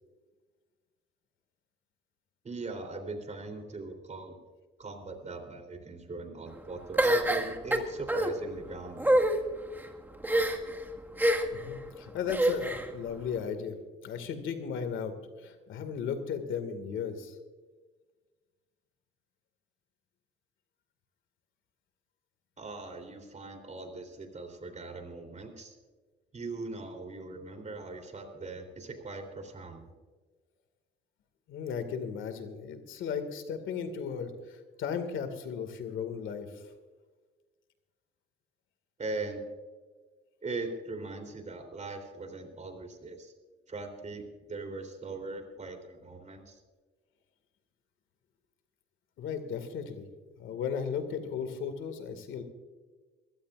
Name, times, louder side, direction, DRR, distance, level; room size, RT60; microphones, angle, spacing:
voice 1, 2.4-4.4 4.8-9.2 22.6-25.8 26.3-29.9 39.0-39.4 40.4-43.3 43.7-46.6, right 3 dB, 35° right, 6 dB, 3.6 m, -40 dB
sound 1, 7.0-8.3 9.0-9.3 10.2-10.7 11.2-11.6 12.3-12.9, right 1 dB, 10° right, 1.8 m, -25 dB
voice 2, 11.5-13.8 14.0-17.4 31.5-36.6 49.2-50.1 50.4-52.4, left 6 dB, 80° left, 8 dB, 2.1 m, -36 dB
22.5 x 16.0 x 2.5 m, 1.4 s
cardioid pair, 90°, 20 cm